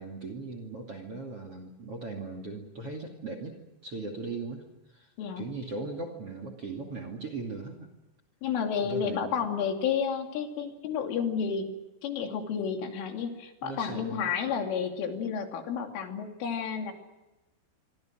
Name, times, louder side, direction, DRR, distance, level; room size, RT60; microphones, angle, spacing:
voice 1, 0.0-7.9 8.8-9.3 13.6-14.3, right 3 dB, 40° right, 6 dB, 2.6 m, -39 dB
voice 2, 8.4-11.7 12.0-16.9, left 7 dB, 75° left, 4 dB, 5.1 m, -31 dB
27.0 x 24.5 x 6.3 m, 1.0 s
omnidirectional pair, 5.9 m